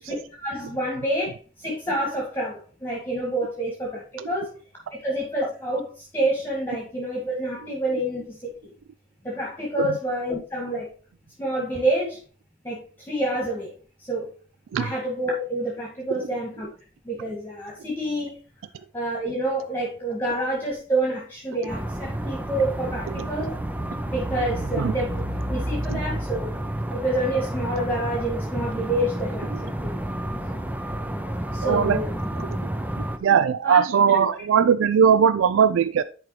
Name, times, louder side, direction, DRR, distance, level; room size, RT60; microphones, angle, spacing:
voice 1, 0.4-4.6 5.0-8.4 8.6-8.7 9.2-10.9 11.4-12.2 12.6-13.7 14.0-14.3 14.7-16.7 17.0-18.4 18.9-23.6 24.1-25.2 25.5-26.5 26.9-29.9 31.5-32.1 33.6-33.8 34.1-34.2, right 1 dB, 10° left, -3 dB, 2.0 m, -28 dB
sound 1, 21.7-33.2, right 1 dB, 10° right, 0.6 m, -30 dB
voice 2, 23.1-23.5 24.8-24.9 25.9-26.0 31.6-32.0 32.3-32.5 33.0-36.0, right 7 dB, 80° right, 13 dB, 0.4 m, -20 dB
10.5 x 4.7 x 3.2 m, 0.39 s
head